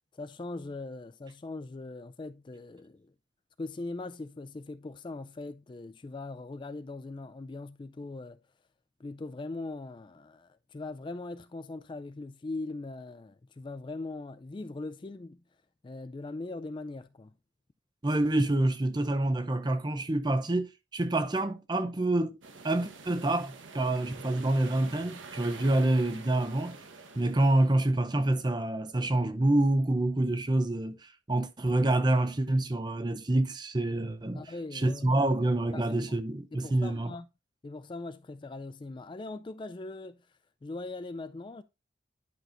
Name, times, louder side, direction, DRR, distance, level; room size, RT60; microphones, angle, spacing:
voice 1, 0.1-3.1 3.6-8.4 9.0-15.4 15.8-17.3 34.3-35.2 35.7-36.2 36.5-37.3 37.6-40.2 40.6-41.6, left 2 dB, 25° left, 0.3 m, -40 dB
voice 2, 18.0-22.4 22.6-26.8 27.1-34.4 34.7-37.1, right 1 dB, 20° right, 0.6 m, -27 dB
sound 1, 22.4-27.8, right 4 dB, 80° right, 1.1 m, -47 dB
10.5 x 5.9 x 2.5 m
head